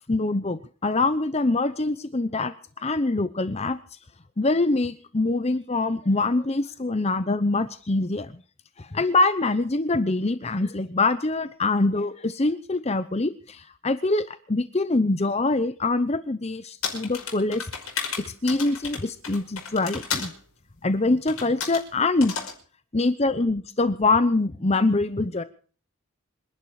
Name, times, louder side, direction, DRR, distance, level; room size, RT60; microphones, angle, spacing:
voice 1, 0.1-2.5 2.8-3.8 4.4-8.3 8.8-17.7 18.2-20.3 20.8-22.3 22.9-25.4, left 2 dB, 30° left, 12 dB, 0.8 m, -24 dB
sound 1, 16.8-20.3 21.3-21.8 22.2-22.5, left 6 dB, 90° left, 5.5 m, -33 dB
26.5 x 11.5 x 4.8 m, 0.42 s
head